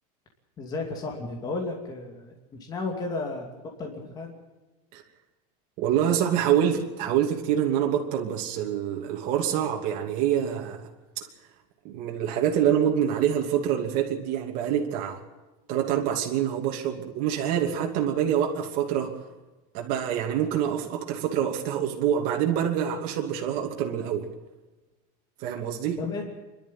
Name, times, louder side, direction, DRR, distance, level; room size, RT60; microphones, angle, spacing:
voice 1, 0.6-3.5 3.8-4.4 26.0-26.3, left 3 dB, 20° left, 1 dB, 2.7 m, -33 dB
voice 2, 5.8-10.9 11.8-15.2 15.7-19.2 19.7-24.3 25.4-26.0, right 9 dB, 45° right, 1 dB, 2.8 m, -26 dB
25.5 x 12.5 x 9.1 m, 1.2 s
cardioid pair, 180°, 19 cm